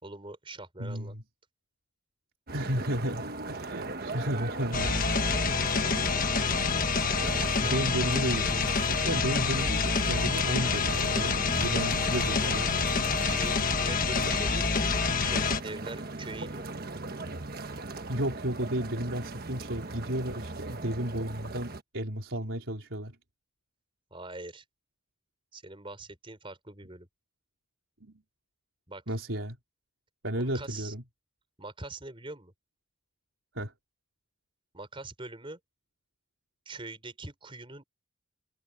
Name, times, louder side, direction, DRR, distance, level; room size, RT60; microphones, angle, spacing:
voice 1, 0.0-1.2 13.2-14.9 15.2-16.7 24.1-24.6 25.5-27.1 28.9-29.0 30.4-30.9 31.6-32.5 34.7-35.6 36.6-37.8, right 2 dB, 25° right, 4.6 m, -43 dB
voice 2, 0.8-1.2 2.5-5.4 7.6-12.7 18.1-23.2 28.0-28.2 29.1-29.6 30.2-31.0 33.5-33.7, right 1 dB, 70° right, 4.2 m, -33 dB
sound 1, 2.5-21.8, right 2 dB, 45° right, 1.4 m, -39 dB
sound 2, 4.7-15.6, left 4 dB, 40° left, 1.4 m, -27 dB
head